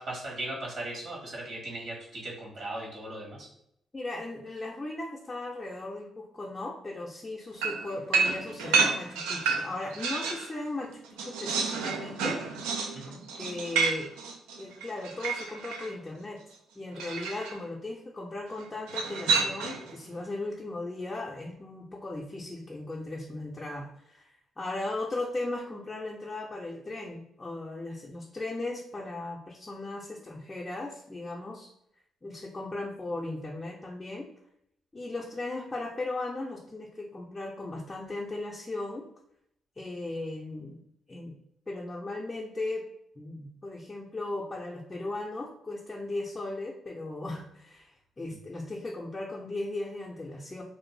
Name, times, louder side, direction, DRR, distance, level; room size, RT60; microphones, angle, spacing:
voice 1, 0.0-3.5 12.9-13.2, right 1 dB, 65° right, -3 dB, 1.2 m, -38 dB
voice 2, 3.9-12.6 13.1-14.1 14.6-16.4 16.8-31.7 32.2-34.3 34.9-39.1 39.8-40.8 41.1-41.4 41.7-42.8 43.2-50.6, left 2 dB, 25° left, -3 dB, 0.5 m, -37 dB
sound 1, 7.6-10.5 10.9-15.9 17.0-17.6 18.9-19.9, right 5 dB, 90° right, 0.3 m, -30 dB
2.6 x 2.0 x 3.1 m, 0.75 s
supercardioid pair, 55°, 0 cm